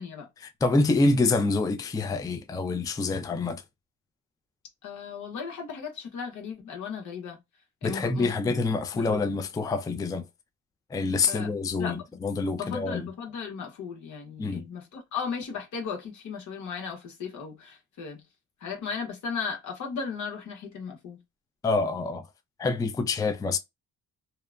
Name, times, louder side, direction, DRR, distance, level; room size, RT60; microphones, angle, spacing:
voice 1, 0.4-3.6 7.8-10.2 10.9-13.1 14.4-14.6 21.6-22.3 22.6-23.6, left 3 dB, 10° left, 0.3 m, -26 dB
voice 2, 4.8-7.4 7.8-8.5 8.9-9.2 11.3-11.5 11.8-12.0 12.6-18.2 18.6-21.2, left 6 dB, 75° left, 1.2 m, -36 dB
2.8 x 2.1 x 2.3 m
cardioid pair, 90°, 30 cm